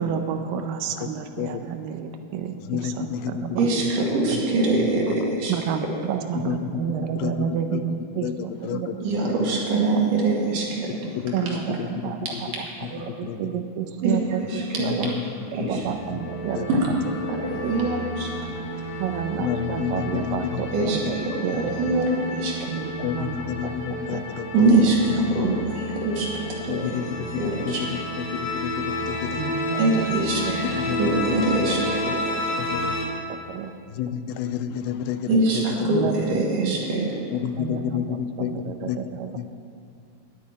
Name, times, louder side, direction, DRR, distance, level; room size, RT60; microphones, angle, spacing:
voice 1, 0.0-3.7 5.5-8.3 8.7-8.9 9.9-10.1 11.3-12.3 12.6-15.1 15.5-16.8 17.6-18.1 19.0-22.3 22.6-23.7 24.1-24.2 29.3-30.1 30.4-30.6 31.7-31.8 33.3-33.7 35.9-36.4 37.6-39.3, right 8 dB, 75° right, 7 dB, 2.2 m, -30 dB
voice 2, 2.7-3.6 4.3-4.4 4.8-5.0 6.4-6.8 7.2-7.8 8.2-9.0 9.2-9.3 11.2-12.1 13.1-13.5 14.8-15.2 15.6-15.8 16.6-16.7 19.4-20.6 21.0-21.1 23.0-24.7 26.7-29.5 30.8-31.2 32.6-32.9 33.9-36.1 37.3-39.0 39.3-39.5, left 9 dB, 80° left, 11 dB, 2.2 m, -30 dB
voice 3, 3.6-5.5 9.0-10.9 11.5-11.6 12.3-12.4 14.0-15.1 15.5-15.8 16.7-18.5 20.7-22.7 24.5-26.8 27.4-27.8 29.8-32.1 35.3-37.2, right 2 dB, 60° right, -3 dB, 3.6 m, -24 dB
sound 1, 15.7-33.0, left 1 dB, 65° left, 3.2 m, -31 dB
10.5 x 9.2 x 9.5 m, 2.4 s
omnidirectional pair, 4.5 m